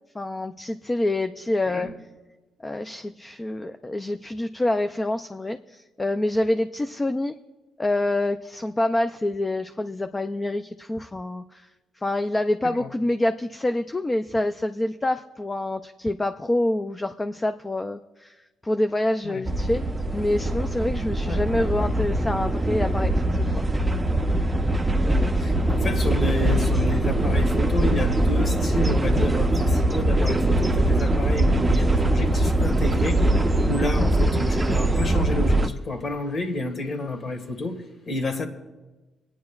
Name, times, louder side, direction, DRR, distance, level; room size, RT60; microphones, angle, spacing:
voice 1, 0.1-1.9 2.6-7.3 7.8-11.7 12.0-18.4 18.6-19.8 20.1-23.7, left 1 dB, 20° left, 0.4 m, -26 dB
sound 1, 19.5-35.7, right 1 dB, 15° right, 0.7 m, -22 dB
voice 2, 25.0-33.2 33.6-38.5, left 2 dB, 45° left, 1.6 m, -30 dB
26.5 x 9.4 x 2.4 m
cardioid pair, 90°, 0 cm